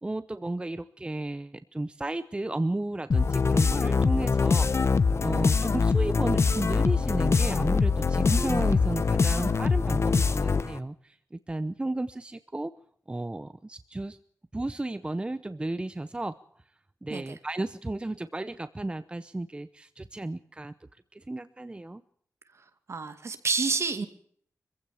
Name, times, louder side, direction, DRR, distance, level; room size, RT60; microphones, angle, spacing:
voice 1, 0.0-4.7 5.2-12.7 13.1-14.2 14.5-16.4 17.0-20.7 21.1-22.0, right 2 dB, 15° right, 13 dB, 0.8 m, -33 dB
sound 1, 3.1-10.8, left 4 dB, 50° left, 1.1 m, -24 dB
voice 2, 22.9-24.1, right 4 dB, 50° right, 9 dB, 2.4 m, -29 dB
25.0 x 15.5 x 7.3 m, 0.63 s
wide cardioid pair, 120°, 6 cm